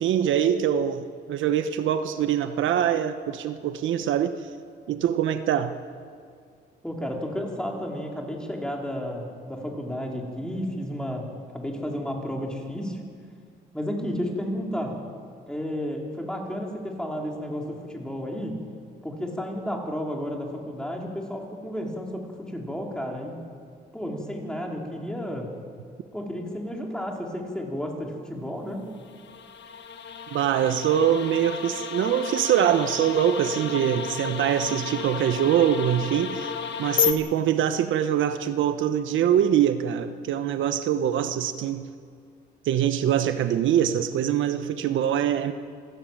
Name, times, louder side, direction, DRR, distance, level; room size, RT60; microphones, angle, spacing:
voice 1, 0.0-4.4 4.9-5.7 30.3-36.5 36.8-41.8 42.6-45.5, right 9 dB, 75° right, 10 dB, 1.1 m, -23 dB
voice 2, 6.8-11.3 11.5-13.0 13.7-15.0 15.5-18.6 19.0-23.4 23.9-25.5 26.1-28.8, equal, 5° left, 0 dB, 4.4 m, -32 dB
sound 1, 29.0-37.1, left 8 dB, 65° left, 1.5 m, -32 dB
26.5 x 13.5 x 9.1 m, 2.1 s
cardioid pair, 90°, 20 cm